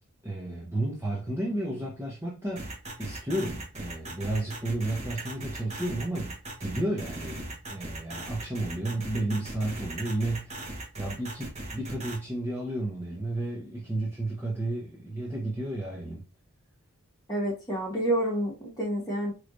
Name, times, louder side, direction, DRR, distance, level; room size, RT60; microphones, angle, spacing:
voice 1, 0.2-16.2, right 1 dB, 10° right, 0.9 m, -32 dB
sound 1, 2.6-12.2, right 2 dB, 30° right, 1.1 m, -38 dB
voice 2, 17.3-19.3, right 1 dB, 15° left, 1.7 m, -28 dB
4.8 x 3.1 x 2.5 m
head